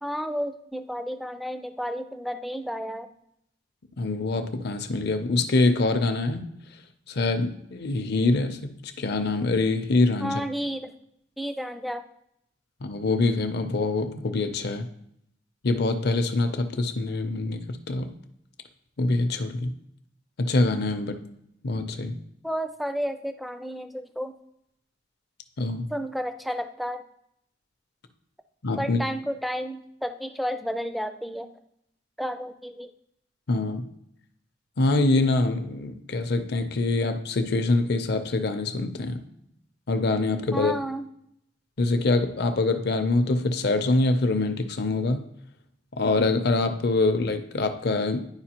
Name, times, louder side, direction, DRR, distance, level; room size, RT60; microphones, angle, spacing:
voice 1, 0.0-3.1 10.2-10.9 11.4-12.0 22.4-24.4 25.9-27.0 28.8-31.5 32.2-32.9 40.5-41.1, equal, ahead, 8 dB, 0.3 m, -31 dB
voice 2, 4.0-6.5 7.1-10.4 12.8-14.9 15.6-18.1 19.0-19.7 20.4-21.2 21.6-22.1 25.6-25.9 28.6-29.0 33.5-33.9 34.8-39.2 39.9-40.7 41.8-45.3 46.0-48.2, left 2 dB, 60° left, 8 dB, 0.6 m, -24 dB
10.5 x 4.6 x 2.9 m, 0.74 s
head